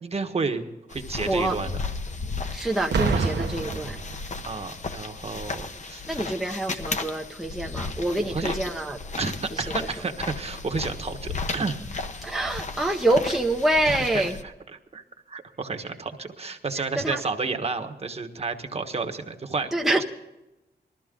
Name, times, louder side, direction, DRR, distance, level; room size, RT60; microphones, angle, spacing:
voice 1, 0.0-1.7 3.1-3.5 4.4-6.1 8.2-8.5 9.2-11.8 14.1-14.2 14.9-15.0 15.3-20.0, right 4 dB, 35° right, 6 dB, 1.3 m, -31 dB
sound 1, 0.9-14.4, left 4 dB, 45° left, 1.0 m, -35 dB
voice 2, 1.3-1.6 2.5-4.0 6.1-9.0 9.5-9.9 12.2-14.4 16.8-17.2 19.7-20.0, right 1 dB, ahead, 0 dB, 0.7 m, -26 dB
Boom, 2.9-4.7 5.5-5.8, right 5 dB, 90° right, 1.1 m, -27 dB
20.5 x 14.0 x 3.8 m, 0.97 s
wide cardioid pair, 165°, 17 cm